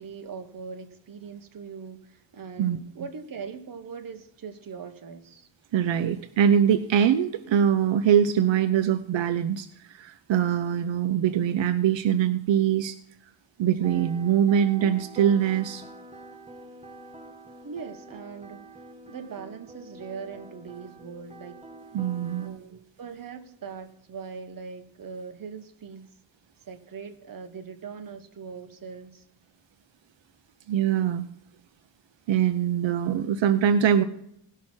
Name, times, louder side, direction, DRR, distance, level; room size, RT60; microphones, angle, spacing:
voice 1, 0.0-5.5 17.6-18.7 19.1-21.5 22.4-26.1 26.6-29.2, right 5 dB, 50° right, 1.3 m, -41 dB
voice 2, 5.7-13.0 13.6-15.8 21.9-22.5 30.7-31.3 32.3-34.0, right 9 dB, 80° right, 0.7 m, -23 dB
sound 1, 13.8-22.5, right 2 dB, 15° right, 1.4 m, -46 dB
18.0 x 6.0 x 4.4 m
wide cardioid pair, 135°, 44 cm